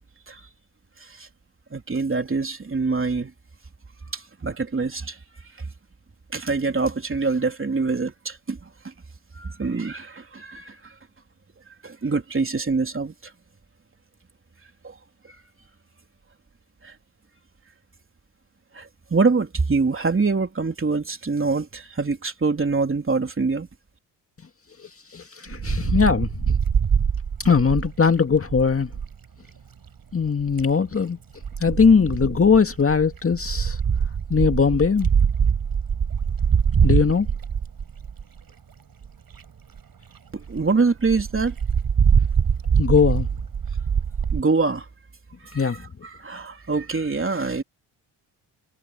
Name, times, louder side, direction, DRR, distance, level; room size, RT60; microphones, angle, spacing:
voice 1, 1.0-1.3 1.7-3.3 4.1-5.2 5.6-5.7 6.3-8.9 9.3-10.9 11.8-13.3 14.8-15.0 15.2-15.3 16.8-16.9 18.7-23.7 40.3-41.5 44.3-44.9 45.4-47.6, right 4 dB, 25° right, 3.4 m, -25 dB
voice 2, 24.8-26.5 27.4-28.9 30.1-31.2 31.6-33.8 34.3-35.1 36.8-37.3 42.8-43.3 45.5-45.8, left 5 dB, 30° left, 2.0 m, -20 dB
Wind, 25.5-29.1 30.2-30.7 31.4-38.4 39.0-39.1 39.3-39.4 39.8-39.9 40.1-40.2 40.5-40.6 41.1-44.4, right 7 dB, 50° right, 6.7 m, -23 dB
cardioid pair, 75°, 45 cm